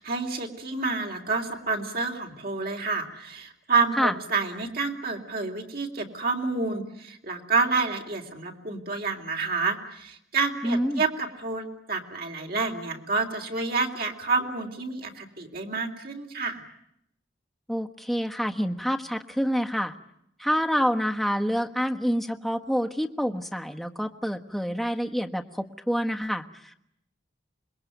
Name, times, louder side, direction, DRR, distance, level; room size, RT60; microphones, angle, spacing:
voice 1, 0.0-16.6, right 4 dB, 50° right, 3 dB, 3.4 m, -29 dB
voice 2, 10.6-11.0 17.7-19.9 20.4-26.7, equal, ahead, 4 dB, 1.2 m, -27 dB
27.0 x 21.5 x 9.3 m, 0.76 s
head